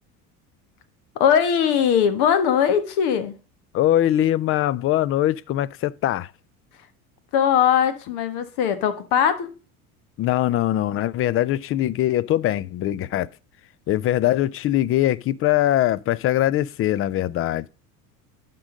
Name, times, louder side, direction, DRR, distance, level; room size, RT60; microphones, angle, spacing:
voice 1, 1.1-3.3 7.3-9.5, left 8 dB, 60° left, 1.5 m, -20 dB
voice 2, 3.7-6.3 10.2-13.3 13.9-17.7, left 13 dB, 35° left, 0.4 m, -22 dB
11.5 x 3.8 x 5.1 m
hypercardioid pair, 85°, 43 cm